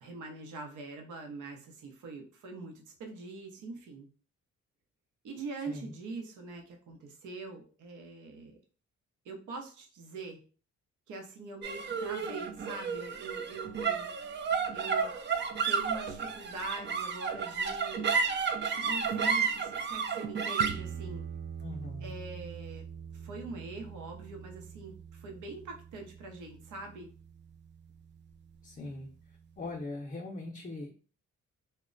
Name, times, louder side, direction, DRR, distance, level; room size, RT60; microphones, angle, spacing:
voice 1, 0.0-4.1 5.2-8.6 9.2-10.4 11.1-14.1 14.7-15.1 15.7-18.1 18.7-21.3 22.0-22.9 23.1-27.1, right 3 dB, 80° right, 3 dB, 0.7 m, -43 dB
sound 1, 11.6-28.2, right 6 dB, 40° right, 0.4 m, -34 dB
voice 2, 21.6-22.1 28.6-29.1 29.6-30.9, left 2 dB, 30° left, -2 dB, 0.5 m, -40 dB
2.1 x 2.1 x 3.7 m, 0.39 s
cardioid pair, 85°, 30 cm